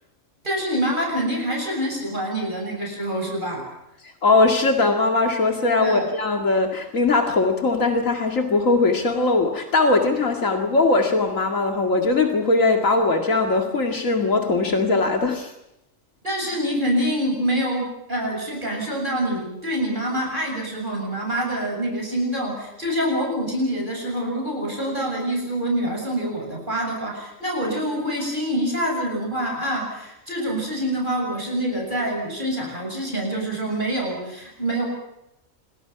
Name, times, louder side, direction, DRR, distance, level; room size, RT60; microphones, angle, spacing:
voice 1, 0.4-3.6 5.8-6.1 16.2-34.8, right 1 dB, 40° right, 0 dB, 7.5 m, -26 dB
voice 2, 4.2-15.5, left 3 dB, 85° left, 3 dB, 2.6 m, -20 dB
29.0 x 24.5 x 5.9 m, 0.85 s
omnidirectional pair, 1.3 m